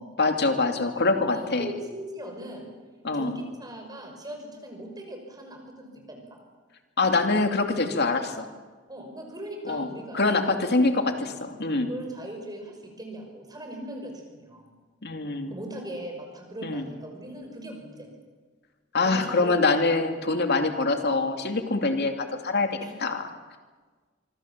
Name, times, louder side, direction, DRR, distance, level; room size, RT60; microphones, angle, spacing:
voice 1, 0.2-1.7 3.0-3.3 7.0-8.5 9.7-9.9 10.1-11.9 15.0-15.5 16.6-16.8 18.9-22.7 23.0-23.3, left 3 dB, 55° left, 5 dB, 2.7 m, -24 dB
voice 2, 0.9-2.7 3.1-6.2 8.9-10.3 11.2-11.3 11.7-14.7 15.5-18.1 19.0-19.6 22.8-22.9, right 1 dB, 20° right, 3 dB, 5.9 m, -39 dB
25.5 x 24.5 x 7.5 m, 1.4 s
head